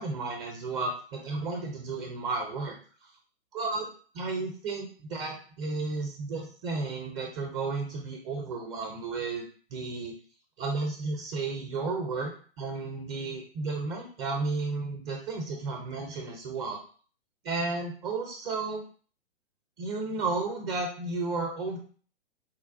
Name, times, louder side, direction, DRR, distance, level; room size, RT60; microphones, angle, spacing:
voice 1, 0.0-2.8 3.5-3.9 4.1-9.4 9.7-10.1 10.6-16.8 17.4-18.8 19.8-21.8, right 3 dB, 25° right, 2 dB, 0.5 m, -33 dB
4.1 x 2.2 x 2.5 m, 0.42 s
figure-of-eight pair, 120°, 31 cm